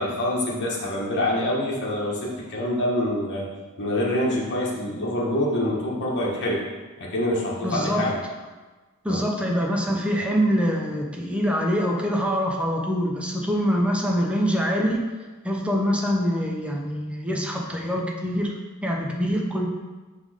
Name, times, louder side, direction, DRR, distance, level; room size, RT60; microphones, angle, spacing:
voice 1, 0.0-3.5 3.8-6.6 7.0-8.2 9.1-9.2, left 1 dB, 50° left, -4 dB, 1.3 m, -26 dB
voice 2, 7.6-8.2 9.0-15.0 15.4-18.5 18.8-19.7, equal, 5° right, -1 dB, 0.7 m, -24 dB
6.0 x 3.5 x 5.0 m, 1.3 s
head